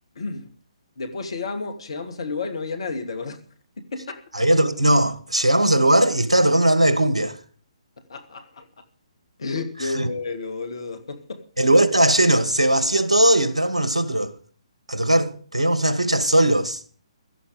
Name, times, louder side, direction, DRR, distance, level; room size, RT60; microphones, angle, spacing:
voice 1, 0.2-0.5 1.0-3.4 3.8-4.2 8.1-8.8 9.4-11.5, left 3 dB, 55° left, 2.5 m, -31 dB
voice 2, 4.3-7.4 9.9-10.1 11.6-14.3 14.9-16.8, right 1 dB, 75° right, 2.1 m, -19 dB
16.5 x 13.0 x 5.1 m
figure-of-eight pair, 130°, 3 cm